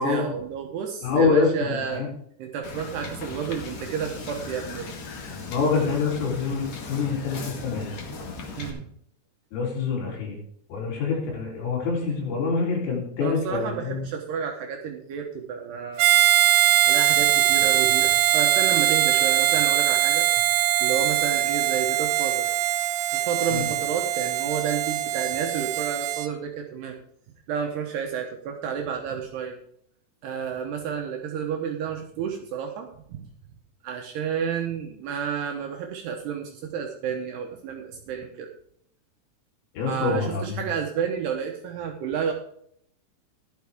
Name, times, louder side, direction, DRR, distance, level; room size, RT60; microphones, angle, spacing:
voice 1, 0.0-2.1 2.4-4.9 8.6-8.9 13.2-16.1 16.8-20.3 20.8-22.5 23.1-27.0 27.5-29.6 30.2-33.2 33.8-38.5 39.8-42.3, right 7 dB, 75° right, 2 dB, 2.6 m, -31 dB
voice 2, 1.0-2.1 5.5-7.9 9.5-10.4 10.7-14.1 23.5-23.7 39.7-40.6, left 4 dB, 90° left, -3 dB, 6.4 m, -26 dB
Wind / Boat Water vehicle, 2.6-8.7, left 4 dB, 60° left, 1.7 m, -37 dB
Harmonica, 16.0-26.3, right 13 dB, 90° right, 3.5 m, -22 dB
14.0 x 11.5 x 3.6 m, 0.69 s
omnidirectional pair, 5.9 m